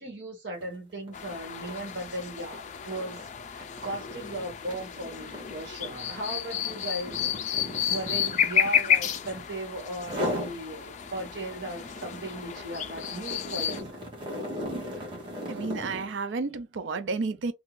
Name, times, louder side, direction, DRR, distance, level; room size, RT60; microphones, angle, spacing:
voice 1, 0.0-7.2 7.5-14.1, right 1 dB, 65° right, 1.3 m, -37 dB
sound 1, 0.5-0.8 1.1-9.5 10.0-10.6 11.0-16.2, equal, 25° right, 0.9 m, -37 dB
sound 2, 1.1-13.8, left 9 dB, 40° left, 0.3 m, -31 dB
voice 2, 15.5-17.5, right 4 dB, 80° right, 0.4 m, -31 dB
2.5 x 2.3 x 3.0 m
head